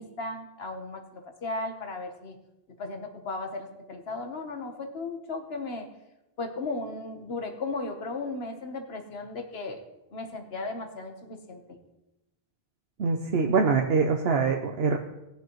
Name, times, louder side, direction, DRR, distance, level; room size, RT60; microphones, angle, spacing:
voice 1, 0.0-2.4 2.8-5.9 6.4-9.8 10.1-11.8, left 3 dB, 75° left, 5 dB, 1.5 m, -36 dB
voice 2, 13.0-15.0, right 4 dB, 75° right, 3 dB, 1.0 m, -24 dB
19.5 x 6.9 x 3.1 m, 0.95 s
omnidirectional pair, 1.0 m